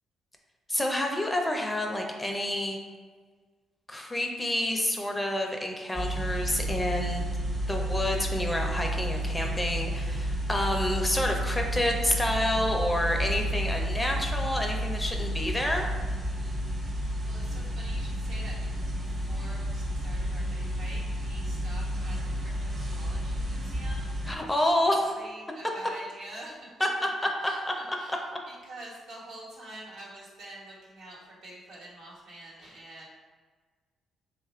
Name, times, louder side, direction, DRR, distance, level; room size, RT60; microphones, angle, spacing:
voice 1, 0.7-2.8 3.9-7.3 7.7-15.9 24.3-25.0 28.1-28.2, left 1 dB, 15° left, 2 dB, 0.5 m, -28 dB
sound 1, 5.9-24.4, equal, 30° right, 0.7 m, -31 dB
voice 2, 16.4-24.7 25.1-26.9 27.4-28.3 28.6-33.1, right 1 dB, 75° right, -5 dB, 1.2 m, -47 dB
3.1 x 2.4 x 4.2 m, 1.5 s
cardioid pair, 90°, 0 cm